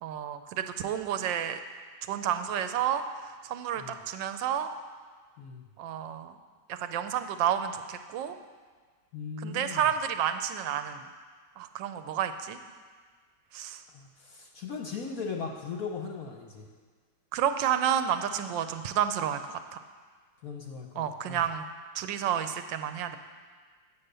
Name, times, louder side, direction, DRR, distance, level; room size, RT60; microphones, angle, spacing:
voice 1, 0.0-1.6 2.1-4.7 5.8-6.4 6.7-8.4 9.4-11.0 11.6-12.6 13.5-13.8 17.3-19.6 21.0-21.6 21.9-23.2, right 9 dB, 75° right, 9 dB, 1.2 m, -30 dB
voice 2, 9.1-9.9 13.9-16.7 20.4-21.4, left 5 dB, 60° left, 2 dB, 0.9 m, -38 dB
9.0 x 7.2 x 6.7 m, 1.5 s
omnidirectional pair, 2.3 m